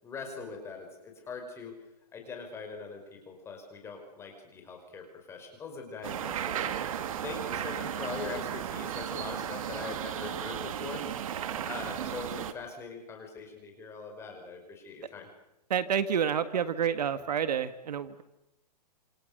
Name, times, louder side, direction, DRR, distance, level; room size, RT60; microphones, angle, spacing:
voice 1, 0.0-1.8 2.1-11.0 11.6-15.3, left 4 dB, 10° left, 3 dB, 5.3 m, -42 dB
sound 1, 6.0-12.5, right 10 dB, 55° right, 2.0 m, -35 dB
voice 2, 15.7-18.2, right 8 dB, 70° right, 12 dB, 1.9 m, -29 dB
28.5 x 27.5 x 6.8 m, 0.89 s
hypercardioid pair, 160°, 21 cm